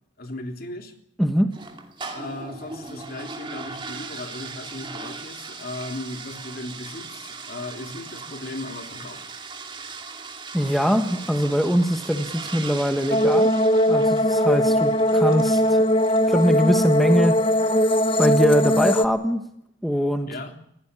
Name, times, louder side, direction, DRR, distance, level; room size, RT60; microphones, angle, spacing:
voice 1, 0.2-0.9 2.1-9.3 18.1-18.2 20.3-20.5, left 2 dB, 50° left, 4 dB, 3.4 m, -36 dB
voice 2, 1.2-1.5 10.5-13.5 13.9-15.8 16.3-17.9 18.2-19.4 19.8-20.3, equal, ahead, 5 dB, 1.4 m, -22 dB
sound 1, 1.5-16.8, right 4 dB, 25° right, 2.7 m, -39 dB
sound 2, 13.1-19.1, equal, 30° left, 0.9 m, -20 dB
21.0 x 17.0 x 9.8 m, 0.73 s
head